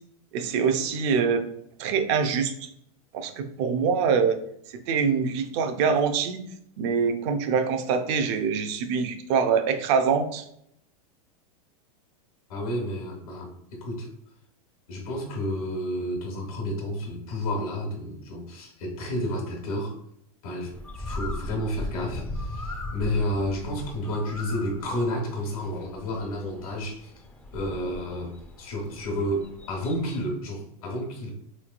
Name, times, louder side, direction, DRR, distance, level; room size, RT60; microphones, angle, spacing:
voice 1, 0.3-1.4 1.8-2.5 3.1-4.4 4.9-6.4 6.8-10.4, right 6 dB, 55° right, 7 dB, 0.5 m, -24 dB
voice 2, 12.5-14.1 14.9-19.9 20.4-27.1 27.5-31.3, equal, 75° left, 0 dB, 1.2 m, -31 dB
Bird, 20.7-30.3, left 1 dB, 10° left, 0.4 m, -38 dB
3.7 x 3.1 x 2.4 m, 0.72 s
supercardioid pair, 140°, 18 cm